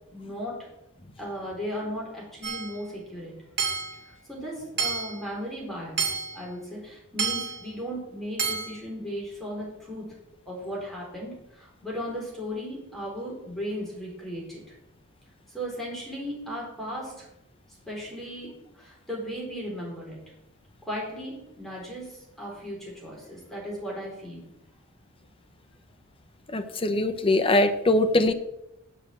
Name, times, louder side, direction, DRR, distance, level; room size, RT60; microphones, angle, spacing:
voice 1, 0.1-0.7 1.2-3.4 4.1-10.1 10.5-14.7 15.5-17.3 17.9-20.2 20.8-24.4, equal, ahead, -4 dB, 4.0 m, -36 dB
Hammer / Chink clink, 2.4-2.8 3.6-4.0 4.8-5.2 6.0-6.4 7.2-7.6 8.4-8.8, right 5 dB, 55° right, 2.5 m, -29 dB
voice 2, 26.5-28.3, left 2 dB, 25° left, 7 dB, 0.8 m, -22 dB
8.0 x 6.1 x 7.6 m, 0.86 s
head